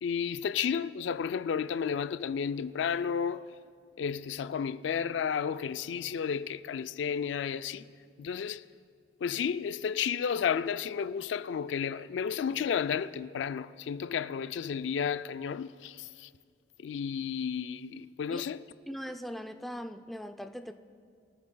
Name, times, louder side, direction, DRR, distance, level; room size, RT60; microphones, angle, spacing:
voice 1, 0.0-3.5 4.0-7.9 8.2-8.6 9.2-16.3 16.8-18.6, left 7 dB, 75° left, 0.3 m, -32 dB
voice 2, 18.9-20.7, equal, ahead, 0.4 m, -40 dB
23.0 x 14.0 x 2.2 m
head